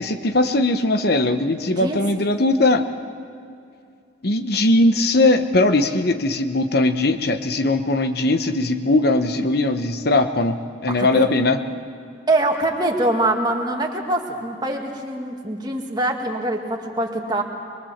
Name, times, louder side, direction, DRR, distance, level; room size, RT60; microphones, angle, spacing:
voice 1, 0.0-2.8 4.2-10.6 10.8-11.6, left 2 dB, 55° left, 7 dB, 1.0 m, -19 dB
voice 2, 1.6-2.0 10.9-11.3 12.3-17.4, right 1 dB, 20° right, 1 dB, 2.2 m, -23 dB
23.5 x 22.5 x 7.3 m, 2.4 s
head